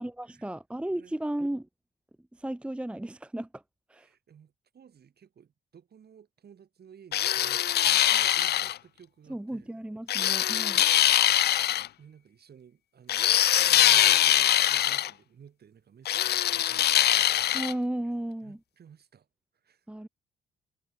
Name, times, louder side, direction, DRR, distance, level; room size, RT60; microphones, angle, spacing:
voice 1, 0.0-1.7 2.3-3.6 3.9-4.1 9.3-10.9 17.5-18.6 19.9-20.1, right 1 dB, 5° right, 0.7 m, -34 dB
voice 2, 3.9-9.7 10.3-10.4 11.6-17.3 18.0-18.1 18.4-19.3 19.5-19.9, right 8 dB, 55° right, 7.7 m, -55 dB
sound 1, 7.1-8.8 10.1-11.9 13.1-15.1 16.1-17.7, left 12 dB, 55° left, 0.5 m, -23 dB
cardioid pair, 90°, 20 cm